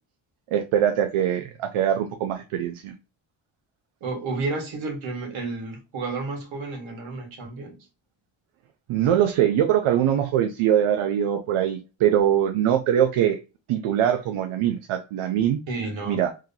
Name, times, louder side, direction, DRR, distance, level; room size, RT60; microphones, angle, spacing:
voice 1, 0.5-2.9 8.9-13.4 13.7-15.6 16.1-16.3, right 10 dB, 90° right, 0.6 m, -22 dB
voice 2, 4.0-7.8 15.7-16.2, right 3 dB, 70° right, 1.5 m, -31 dB
3.2 x 2.7 x 3.7 m
cardioid pair, 155°, 48 cm